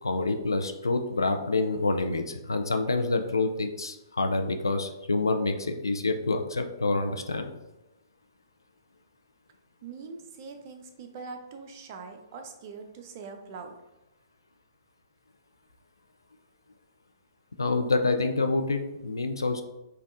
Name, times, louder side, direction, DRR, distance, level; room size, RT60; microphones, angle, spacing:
voice 1, 0.0-7.5 17.6-19.6, left 3 dB, 75° left, 6 dB, 0.3 m, -27 dB
voice 2, 9.8-13.7, right 4 dB, 40° right, 5 dB, 0.5 m, -42 dB
5.2 x 2.3 x 2.5 m, 0.98 s
figure-of-eight pair, 120°, 2 cm